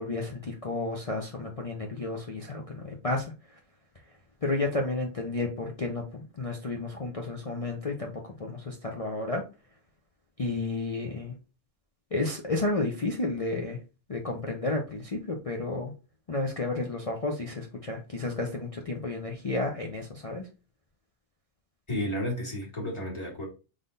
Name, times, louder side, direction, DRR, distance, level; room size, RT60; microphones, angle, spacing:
voice 1, 0.0-3.3 4.4-8.1 8.4-9.4 10.4-11.3 12.1-13.8 14.1-15.9 16.3-20.5, left 2 dB, 45° left, 0.5 m, -31 dB
voice 2, 21.9-23.4, left 1 dB, 20° left, 1.9 m, -32 dB
3.8 x 3.4 x 3.8 m
omnidirectional pair, 1.5 m